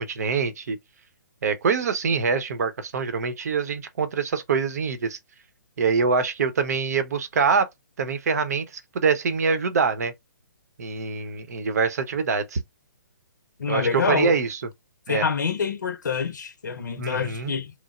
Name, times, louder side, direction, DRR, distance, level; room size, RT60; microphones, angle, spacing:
voice 1, 0.1-0.8 1.4-5.2 5.8-7.7 8.0-10.1 10.8-12.6 13.7-14.6 15.1-15.2 17.0-17.5, right 5 dB, 60° right, 0.7 m, -24 dB
voice 2, 13.6-14.3 15.1-17.7, left 5 dB, 75° left, 0.6 m, -26 dB
3.1 x 2.0 x 2.3 m
hypercardioid pair, 140°, 10 cm